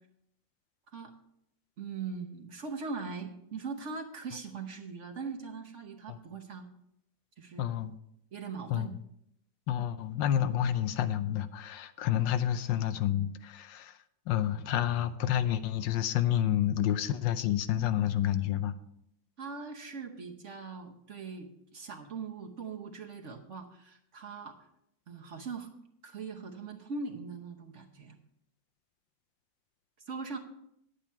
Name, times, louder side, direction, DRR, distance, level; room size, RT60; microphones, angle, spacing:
voice 1, 1.8-6.7 7.4-7.8 8.3-8.9 19.4-24.7 25.1-25.7 26.0-28.2 30.1-30.4, right 4 dB, 50° right, 2 dB, 1.1 m, -41 dB
voice 2, 7.6-8.0 8.7-8.9 9.7-14.0 14.3-18.7, left 11 dB, 80° left, 11 dB, 1.3 m, -29 dB
10.5 x 8.4 x 4.3 m, 0.75 s
omnidirectional pair, 2.0 m